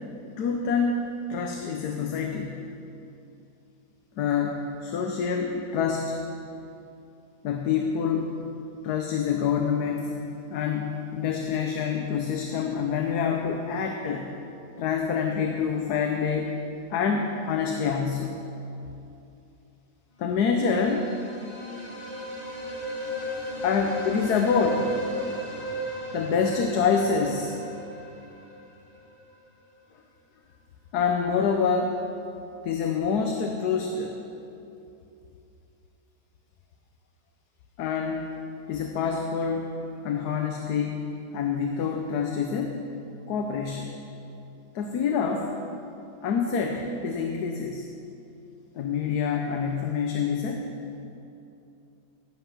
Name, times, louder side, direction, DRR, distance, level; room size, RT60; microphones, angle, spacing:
voice 1, 0.4-2.6 4.2-6.2 7.4-8.3 8.8-10.2 10.5-14.3 14.8-16.6 16.9-18.4 20.2-21.1 23.6-25.0 26.1-27.5 30.9-32.1 32.6-34.2 37.8-38.3 38.7-39.8 40.0-42.8 43.3-43.9 44.7-45.5 46.2-47.8 48.8-50.7, left 6 dB, 70° left, 3 dB, 1.3 m, -26 dB
sound 1, 20.4-29.2, equal, 25° left, 2.0 m, -36 dB
14.5 x 7.8 x 5.9 m, 2.8 s
omnidirectional pair, 1.8 m